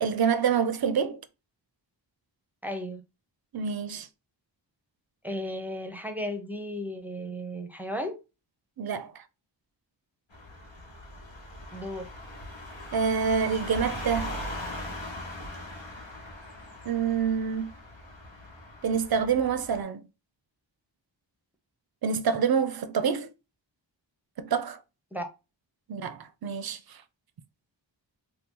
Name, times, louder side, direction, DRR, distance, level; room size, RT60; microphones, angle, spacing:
voice 1, 0.0-1.2 3.5-4.1 8.8-9.2 12.9-14.4 16.9-17.7 18.8-20.0 22.0-23.3 24.4-24.8 25.9-27.0, right 6 dB, 55° right, 0.5 m, -27 dB
voice 2, 2.6-3.0 5.2-8.1 11.7-12.1 25.1-25.3, equal, 5° right, 0.5 m, -34 dB
sound 1, 10.3-19.8, left 1 dB, 85° left, 1.1 m, -40 dB
2.7 x 2.3 x 3.6 m
wide cardioid pair, 80°, 45 cm